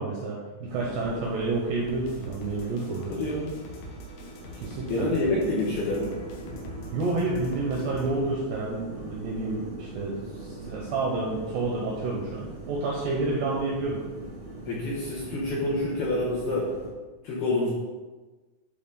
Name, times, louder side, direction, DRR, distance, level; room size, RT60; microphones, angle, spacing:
voice 1, 0.0-3.1 4.6-5.1 6.9-14.0, right 3 dB, 75° right, -2 dB, 2.5 m, -29 dB
sound 1, 0.7-16.9, right 2 dB, 50° right, 1.4 m, -42 dB
sound 2, 1.9-8.1, left 1 dB, 85° left, 3.9 m, -43 dB
voice 2, 3.1-3.5 4.9-6.1 14.7-16.7 17.2-17.7, left 2 dB, 70° left, -7 dB, 2.4 m, -27 dB
11.0 x 4.1 x 4.0 m, 1.3 s
omnidirectional pair, 5.9 m